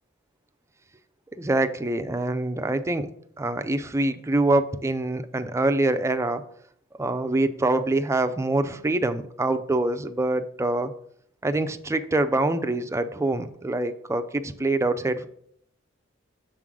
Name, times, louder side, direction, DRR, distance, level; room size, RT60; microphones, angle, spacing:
voice 1, 1.3-3.1 3.4-6.4 7.0-10.9 11.4-15.3, right 2 dB, 15° right, 9 dB, 0.4 m, -25 dB
6.7 x 3.7 x 6.1 m, 0.68 s
head